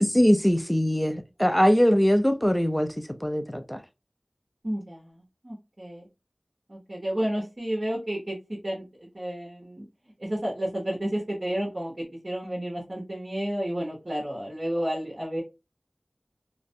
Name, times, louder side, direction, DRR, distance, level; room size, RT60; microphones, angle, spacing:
voice 1, 0.1-2.9 3.2-3.8, equal, 10° left, 0.4 m, -21 dB
voice 2, 4.6-6.1 6.7-8.8 9.1-9.8 10.2-15.4, right 1 dB, 55° right, 0.9 m, -31 dB
2.4 x 2.1 x 2.6 m
wide cardioid pair, 40°, 0 cm